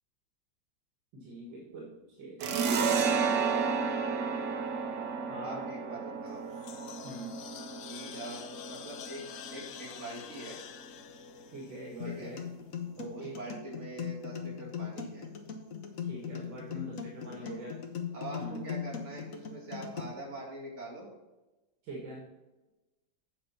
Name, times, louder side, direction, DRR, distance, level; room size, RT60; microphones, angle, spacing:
voice 1, 1.1-1.9 2.2-2.4 5.3-5.6 7.0-7.4 11.5-12.4 13.0-13.4 16.0-17.8 18.4-18.6 21.8-22.2, right 1 dB, 85° right, -2 dB, 2.2 m, -43 dB
sound 1, 2.4-9.6, right 5 dB, 65° right, 1.4 m, -32 dB
voice 2, 5.4-6.4 7.9-9.2 9.5-10.6 12.0-12.4 13.1-15.3 17.4-17.6 18.1-21.1, right 2 dB, 40° right, -2 dB, 2.5 m, -43 dB
sound 2, 6.3-12.6, left 9 dB, 90° left, 1.3 m, -47 dB
sound 3, 12.0-20.0, left 7 dB, 55° left, 1.3 m, -39 dB
8.7 x 5.1 x 5.6 m, 1.1 s
omnidirectional pair, 2.0 m